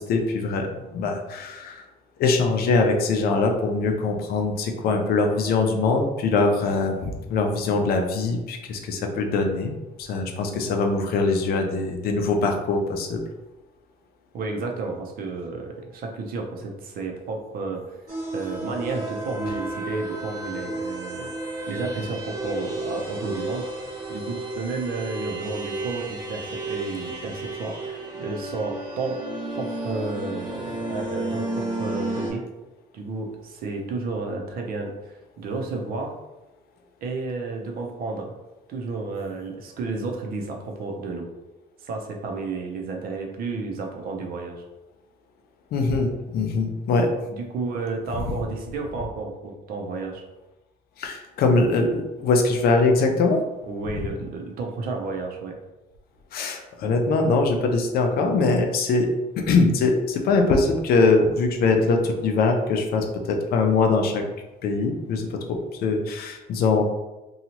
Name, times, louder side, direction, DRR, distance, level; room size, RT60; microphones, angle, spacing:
voice 1, 0.0-1.8 2.2-9.7 10.0-13.2 45.7-47.1 51.0-53.4 56.3-64.2 64.6-66.8, left 3 dB, 65° left, 4 dB, 0.5 m, -22 dB
voice 2, 14.3-18.0 18.3-21.3 21.7-23.7 24.1-29.2 29.5-32.4 32.9-36.1 37.0-38.3 38.7-41.3 41.8-44.6 47.3-50.2 53.7-55.6, right 3 dB, 60° right, 1 dB, 0.6 m, -32 dB
sound 1, 18.1-32.3, right 2 dB, 25° right, 1.0 m, -32 dB
2.9 x 2.3 x 2.8 m, 1.0 s
cardioid pair, 110°, 17 cm